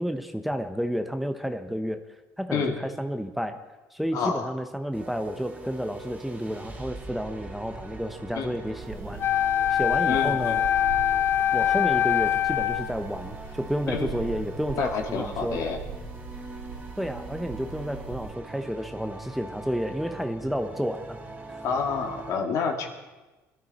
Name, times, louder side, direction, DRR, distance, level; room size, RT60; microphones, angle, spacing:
voice 1, 0.0-2.0 2.4-3.6 3.9-9.3 9.7-10.6 11.5-15.6 17.0-21.2 21.5-21.6, equal, ahead, 7 dB, 0.9 m, -31 dB
voice 2, 4.1-4.4 8.3-8.5 10.1-10.6 13.9-14.3 14.7-15.8 21.6-22.9, left 5 dB, 65° left, 3 dB, 2.4 m, -28 dB
sound 1, 4.9-22.3, right 2 dB, 25° right, 2.4 m, -43 dB
sound 2, 8.8-18.3, right 6 dB, 85° right, 2.8 m, -40 dB
Wind instrument woodwind instrument, 9.2-13.0, left 11 dB, 45° left, 0.9 m, -23 dB
21.5 x 13.0 x 4.3 m, 1.2 s
cardioid pair, 100°, 6 cm